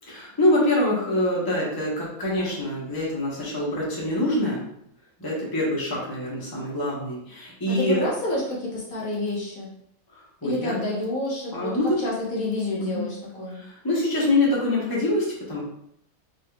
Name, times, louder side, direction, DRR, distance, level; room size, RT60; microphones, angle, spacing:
voice 1, 0.0-4.7 5.2-8.0 10.1-10.8 11.5-12.0 12.8-13.0 13.5-15.6, left 1 dB, 15° left, -5 dB, 1.1 m, -25 dB
voice 2, 7.7-9.7 10.4-13.6, left 2 dB, 70° left, -5 dB, 1.7 m, -29 dB
5.3 x 3.7 x 2.4 m, 0.74 s
omnidirectional pair, 1.5 m